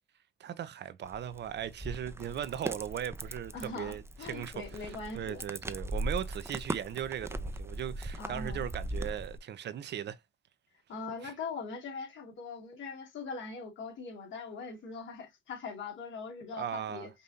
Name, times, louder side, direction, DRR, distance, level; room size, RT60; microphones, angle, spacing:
voice 1, 0.4-4.0 4.3-10.2 11.2-11.3 16.6-17.1, right 10 dB, 60° right, 0.7 m, -38 dB
sound 1, 1.0-9.4, right 1 dB, 10° right, 0.6 m, -39 dB
voice 2, 3.5-5.4 8.1-8.7 10.9-17.1, left 4 dB, 70° left, 2.4 m, -41 dB
5.3 x 2.7 x 2.7 m
cardioid pair, 90°, 20 cm